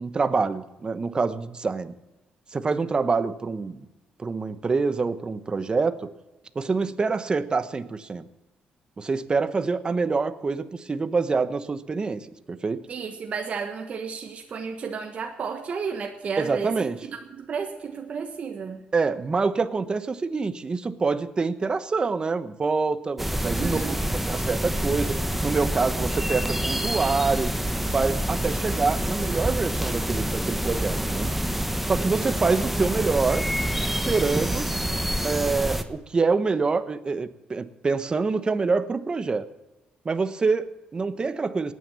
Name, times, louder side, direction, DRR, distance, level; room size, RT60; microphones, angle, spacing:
voice 1, 0.0-1.9 2.5-3.8 4.2-6.0 6.5-8.3 9.0-12.8 16.4-17.0 18.9-24.0 24.3-25.2 25.4-27.5 27.9-31.3 31.9-33.4 33.9-34.7 35.2-39.5 40.0-41.7, right 4 dB, 30° right, 12 dB, 1.1 m, -26 dB
voice 2, 12.9-16.7 17.3-18.8 23.4-24.0, right 5 dB, 50° right, 4 dB, 1.3 m, -32 dB
sound 1, 23.2-35.8, equal, 5° right, 1.1 m, -27 dB
18.0 x 9.5 x 7.0 m, 1.0 s
cardioid pair, 95°, 3 cm